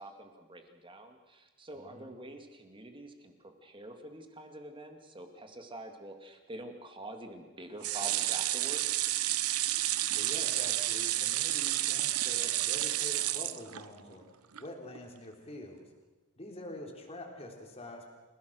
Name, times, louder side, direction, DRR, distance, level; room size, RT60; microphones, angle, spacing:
voice 1, 0.0-8.9, right 1 dB, 25° right, 5 dB, 2.3 m, -46 dB
voice 2, 1.7-2.1 10.1-14.2 14.6-15.8 16.4-18.1, left 1 dB, 30° left, 2 dB, 3.5 m, -45 dB
sound 1, 7.8-14.1 14.6-14.7 15.0-15.1, right 15 dB, 80° right, 0.8 m, -31 dB
29.5 x 17.0 x 6.4 m, 1.2 s
head